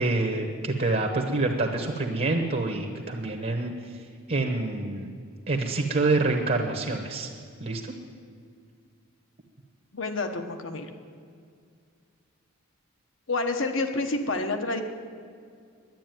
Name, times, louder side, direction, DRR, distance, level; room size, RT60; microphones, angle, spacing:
voice 1, 0.0-3.7 4.3-5.1 5.5-7.3 7.6-7.9, right 2 dB, 45° right, 3 dB, 1.1 m, -26 dB
voice 2, 9.9-10.9 13.3-14.8, left 2 dB, 65° left, 6 dB, 1.1 m, -28 dB
10.5 x 10.0 x 9.2 m, 2.2 s
head